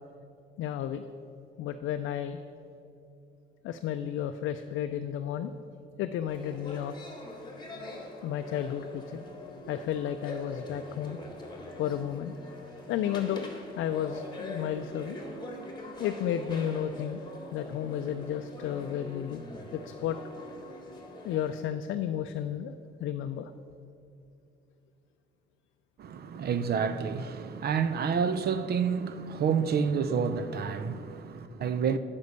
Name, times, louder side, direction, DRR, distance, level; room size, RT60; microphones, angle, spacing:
voice 1, 0.6-1.0 1.6-2.4 3.6-5.5 6.0-6.9 8.2-9.2 9.7-11.2 11.8-12.3 12.9-13.5 13.8-15.2 16.0-17.2 17.5-19.4 19.7-20.2 21.2-23.5 26.3-26.4, left 10 dB, 80° left, 0.4 m, -32 dB
sound 1, 6.3-21.5, left 1 dB, 20° left, 1.6 m, -43 dB
voice 2, 26.0-32.0, right 6 dB, 55° right, 0.5 m, -29 dB
9.6 x 5.3 x 6.6 m
cardioid pair, 90°, 20 cm